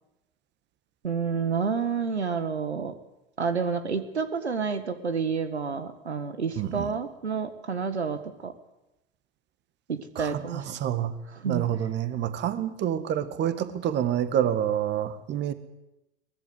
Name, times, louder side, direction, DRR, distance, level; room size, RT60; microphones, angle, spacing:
voice 1, 1.0-2.9 3.4-8.5 9.9-10.7 11.4-11.6, right 5 dB, 80° right, 11 dB, 1.7 m, -29 dB
voice 2, 6.6-6.9 10.2-11.1 11.4-15.5, right 10 dB, 35° right, 12 dB, 1.8 m, -28 dB
22.5 x 19.0 x 8.0 m, 0.92 s
figure-of-eight pair, 85°, 33 cm